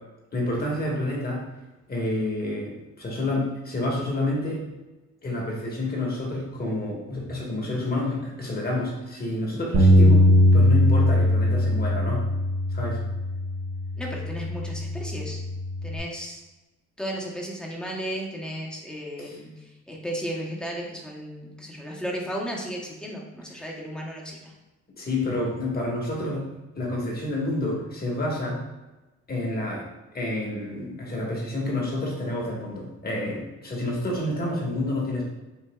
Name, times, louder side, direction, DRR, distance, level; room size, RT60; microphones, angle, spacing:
voice 1, 0.3-1.4 1.9-4.6 5.2-12.2 12.7-13.0 19.2-19.3 23.6-23.7 25.0-26.5 26.7-28.6 29.3-29.9 30.1-35.2, left 1 dB, 30° left, -3 dB, 1.3 m, -29 dB
Bass guitar, 9.7-16.0, left 1 dB, 50° right, 0.7 m, -21 dB
voice 2, 14.0-15.4 15.8-16.4 17.0-24.5, equal, 5° left, -2 dB, 0.8 m, -34 dB
5.5 x 2.6 x 2.3 m, 1.1 s
cardioid pair, 90°, 30 cm